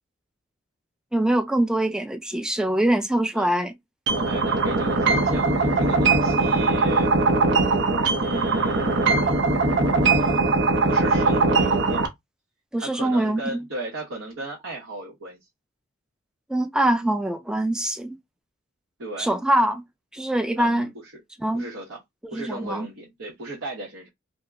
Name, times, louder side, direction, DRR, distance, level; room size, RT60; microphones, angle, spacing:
voice 1, 1.1-3.7 12.7-13.6 16.5-18.2 19.2-19.8 20.1-20.9 21.4-21.7 22.2-22.9, right 1 dB, 5° right, 0.4 m, -23 dB
sound 1, 4.1-12.1, right 3 dB, 60° right, 0.7 m, -21 dB
voice 2, 4.1-7.1 8.2-9.2 10.9-12.0 12.8-15.4 19.0-19.3 20.6-20.9 21.5-22.0 22.3-24.1, right 1 dB, 80° right, 1.1 m, -35 dB
2.8 x 2.1 x 3.5 m
head